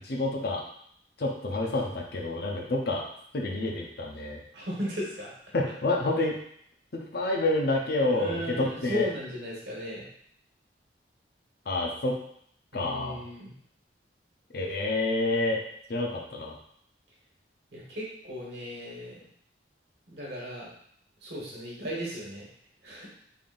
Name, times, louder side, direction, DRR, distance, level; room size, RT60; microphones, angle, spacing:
voice 1, 0.1-0.6 1.2-3.0 3.3-4.4 5.5-6.4 6.9-9.1 11.7-12.1 12.7-13.2 14.5-15.6 15.9-16.6, left 2 dB, 55° left, 0 dB, 0.6 m, -28 dB
voice 2, 4.5-5.3 8.1-10.0 12.7-13.5 17.7-19.2 20.1-20.7 21.2-22.5 22.8-23.1, equal, 60° right, -5 dB, 1.3 m, -36 dB
3.8 x 3.6 x 2.5 m, 0.67 s
head